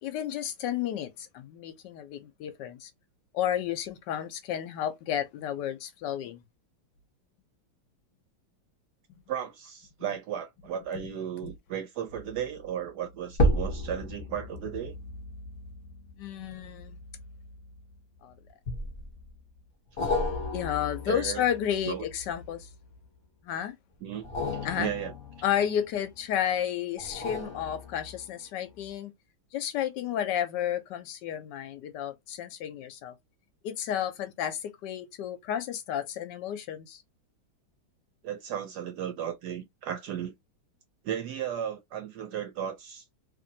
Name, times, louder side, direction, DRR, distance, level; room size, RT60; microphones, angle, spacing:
voice 1, 0.0-2.9 3.3-6.4 10.9-11.1 11.4-11.5 16.2-17.0 18.2-18.3 20.5-22.7 23.4-23.8 24.6-24.9 25.4-29.1 29.5-33.1 33.6-37.0, left 10 dB, 70° left, 1.1 m, -32 dB
voice 2, 9.3-15.0 21.1-21.4 21.9-22.0 24.0-24.3 24.7-25.1 38.2-40.3 41.0-43.1, right 9 dB, 75° right, 1.0 m, -35 dB
sound 1, 12.1-12.4 13.3-18.0 18.7-19.3 20.0-22.9 24.1-26.2 27.0-28.4 28.9-29.0, left 1 dB, 40° left, 1.0 m, -33 dB
3.1 x 2.6 x 2.6 m
omnidirectional pair, 2.1 m